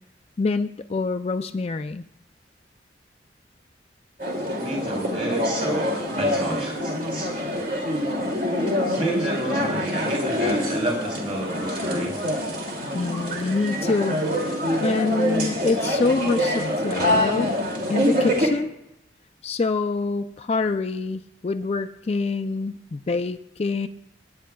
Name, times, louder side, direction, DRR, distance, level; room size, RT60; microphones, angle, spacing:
voice 1, 0.4-2.0 12.9-14.2 14.4-17.5 17.9-18.7 19.4-23.9, left 3 dB, 35° left, 8 dB, 0.3 m, -26 dB
sound 1, 4.2-18.5, equal, 50° right, 2.5 m, -25 dB
voice 2, 4.6-7.3 8.9-12.2, right 1 dB, 30° right, -2 dB, 4.3 m, -30 dB
26.0 x 10.5 x 2.3 m, 0.81 s
head